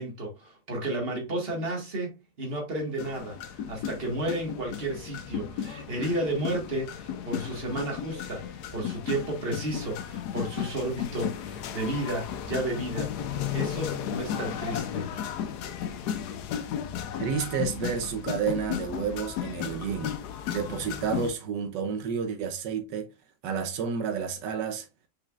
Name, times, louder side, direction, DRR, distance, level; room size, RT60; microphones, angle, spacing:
voice 1, 0.0-13.1 13.5-15.1, right 1 dB, 35° right, 1.6 m, -32 dB
sound 1, 3.0-21.3, left 9 dB, 75° left, 1.1 m, -34 dB
voice 2, 17.2-20.1 20.5-23.1 23.4-24.9, right 6 dB, 80° right, 1.4 m, -30 dB
5.1 x 4.1 x 2.3 m
omnidirectional pair, 1.9 m